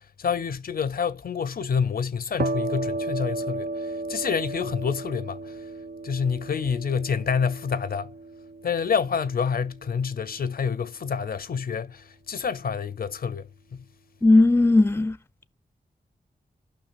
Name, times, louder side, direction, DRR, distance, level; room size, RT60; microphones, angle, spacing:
voice 1, 0.0-5.6 6.0-8.1 8.6-13.8, left 6 dB, 65° left, 0.5 m, -28 dB
sound 1, 2.4-9.9, right 2 dB, 90° right, 0.6 m, -34 dB
voice 2, 14.2-15.2, left 2 dB, 15° left, 0.4 m, -17 dB
16.5 x 5.9 x 2.4 m
wide cardioid pair, 115°, 16 cm